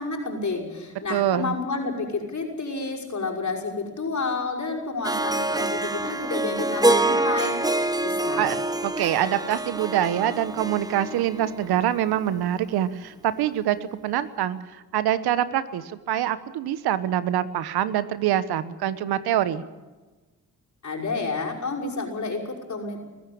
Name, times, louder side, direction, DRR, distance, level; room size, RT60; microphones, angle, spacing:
voice 1, 0.0-7.7 8.0-8.5 20.8-23.0, left 3 dB, 50° left, 0 dB, 5.7 m, -30 dB
voice 2, 1.1-1.5 8.4-19.6, right 11 dB, 80° right, 14 dB, 1.2 m, -25 dB
Harp, 5.0-12.2, right 2 dB, 10° right, 1.1 m, -26 dB
21.5 x 15.0 x 8.7 m, 1.2 s
supercardioid pair, 45°, 38 cm